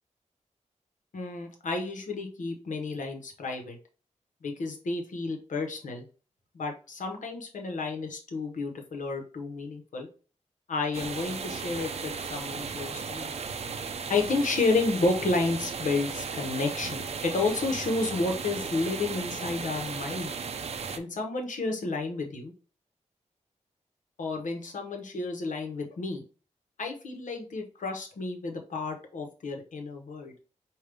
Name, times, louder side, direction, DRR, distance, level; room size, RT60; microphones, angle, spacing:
voice 1, 1.1-3.8 4.4-6.1 6.5-10.1 10.7-13.3 14.1-20.3 21.0-22.5 24.2-26.2 26.8-30.3, left 3 dB, 90° left, 3 dB, 1.1 m, -31 dB
sound 1, 10.9-21.0, right 5 dB, 55° right, 0.5 m, -36 dB
5.2 x 2.6 x 3.4 m, 0.37 s
wide cardioid pair, 150°, 13 cm